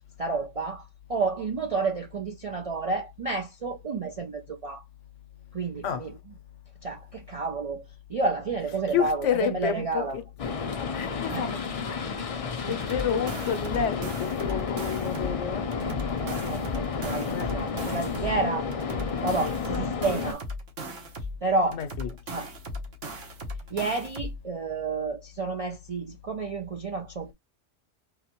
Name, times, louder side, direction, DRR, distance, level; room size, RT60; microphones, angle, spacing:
voice 1, 0.2-4.8 5.5-6.2 6.8-10.2 11.3-11.6 12.7-12.8 15.9-18.7 19.2-20.5 21.4-21.8 22.3-22.5 23.7-27.3, right 3 dB, 60° right, 0.3 m, -30 dB
voice 2, 8.9-10.2 10.9-12.3 12.6-15.7 17.3-17.6 21.7-22.1, left 8 dB, 80° left, 1.0 m, -30 dB
sound 1, 10.4-20.3, left 5 dB, 55° left, 0.4 m, -31 dB
sound 2, 12.7-15.4 15.7-18.4 18.7-21.4 21.7-24.4, equal, 90° right, 1.4 m, -37 dB
3.8 x 2.1 x 2.9 m
omnidirectional pair, 1.2 m